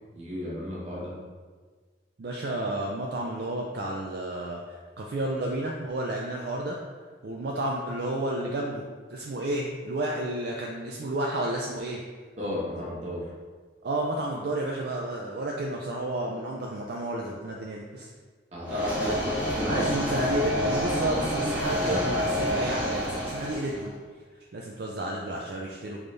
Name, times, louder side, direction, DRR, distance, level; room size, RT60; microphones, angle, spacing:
voice 1, 0.1-1.1 12.4-13.3 18.5-19.9, equal, 40° right, -7 dB, 1.3 m, -33 dB
voice 2, 2.2-6.8 7.2-8.8 9.1-12.0 13.8-18.1 19.7-23.9 24.5-26.0, right 1 dB, 60° right, -1 dB, 0.4 m, -31 dB
sound 1, 18.6-23.8, equal, 5° right, 0.8 m, -28 dB
3.8 x 3.6 x 3.3 m, 1.5 s
head